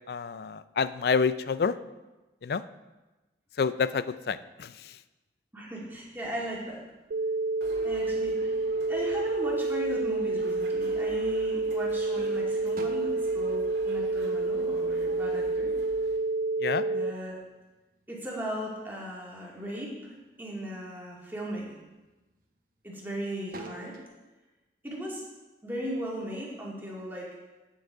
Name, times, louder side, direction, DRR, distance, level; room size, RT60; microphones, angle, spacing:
voice 1, 0.1-1.8 2.4-2.6 3.6-5.0 16.6-16.9, left 5 dB, 55° left, 15 dB, 0.4 m, -28 dB
voice 2, 5.5-6.8 7.8-8.5 8.9-15.7 16.9-17.4 18.1-21.8 22.8-24.0 24.8-25.3 25.6-27.3, equal, 10° right, -4 dB, 2.0 m, -37 dB
sound 1, 5.8-7.7 8.2-8.9 9.4-10.0 10.4-11.3 11.8-11.9 12.2-15.1 15.5-17.8 18.1-19.2 19.6-20.2 20.7-20.9 21.4-23.1 23.4-24.1, right 2 dB, 50° right, 1.0 m, -48 dB
sound 2, 7.1-17.1, right 3 dB, 90° right, 0.6 m, -29 dB
sound 3, 7.6-16.2, right 1 dB, 70° right, 1.9 m, -49 dB
9.2 x 7.4 x 4.6 m, 1.1 s
head